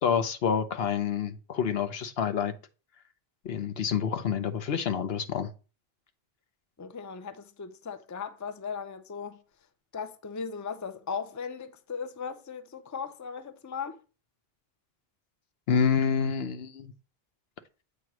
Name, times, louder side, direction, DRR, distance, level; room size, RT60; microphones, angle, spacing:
voice 1, 0.0-2.5 3.4-5.5 15.7-16.9, left 7 dB, 75° left, 1.0 m, -28 dB
voice 2, 6.8-9.4 9.9-14.0, left 6 dB, 25° left, 0.4 m, -37 dB
8.0 x 3.1 x 6.0 m
omnidirectional pair, 1.0 m